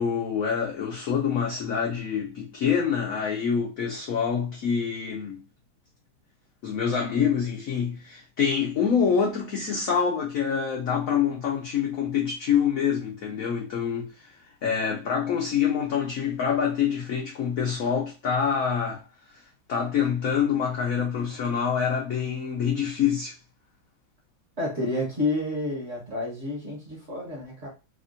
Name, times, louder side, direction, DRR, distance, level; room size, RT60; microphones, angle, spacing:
voice 1, 0.0-5.4 6.6-19.0 19.7-23.4, left 7 dB, 80° left, 0.7 m, -26 dB
voice 2, 24.6-27.7, left 2 dB, 40° right, 1.2 m, -29 dB
3.4 x 2.5 x 2.5 m
omnidirectional pair, 2.2 m